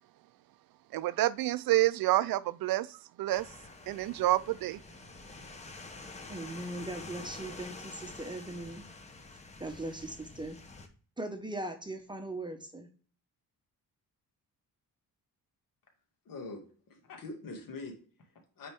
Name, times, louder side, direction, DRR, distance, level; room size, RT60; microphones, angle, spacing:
voice 1, 0.9-3.5 3.9-4.8, right 15 dB, 75° right, 0.5 m, -28 dB
sound 1, 3.3-10.9, left 3 dB, 20° left, 0.8 m, -48 dB
voice 2, 6.3-8.9 9.6-10.6 11.2-12.9, right 2 dB, 15° right, 0.8 m, -39 dB
voice 3, 16.2-18.7, left 3 dB, 65° left, 2.2 m, -44 dB
9.4 x 4.3 x 3.5 m
wide cardioid pair, 170°, 36 cm